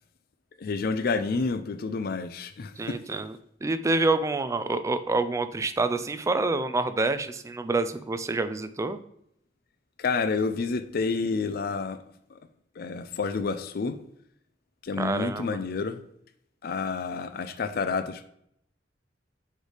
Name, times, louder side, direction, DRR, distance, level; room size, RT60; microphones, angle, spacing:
voice 1, 0.6-3.0 10.0-12.0 12.3-12.4 12.8-14.0 14.8-16.0 16.6-18.3, left 4 dB, 55° left, 0.4 m, -29 dB
voice 2, 2.8-9.0 15.0-15.6, right 3 dB, 15° right, 0.3 m, -27 dB
6.5 x 3.3 x 4.9 m
head